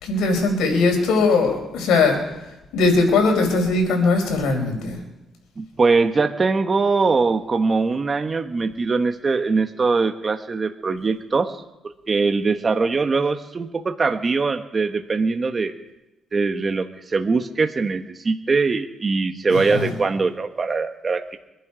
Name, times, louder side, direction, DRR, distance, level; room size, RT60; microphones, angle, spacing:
voice 1, 0.0-2.2 2.7-5.0 19.5-19.9, left 3 dB, 85° left, 3 dB, 4.6 m, -20 dB
voice 2, 5.6-11.6 12.1-15.7 16.3-21.4, right 4 dB, 35° right, 6 dB, 1.2 m, -22 dB
24.5 x 11.5 x 5.1 m, 0.96 s
cardioid pair, 90°, 0 cm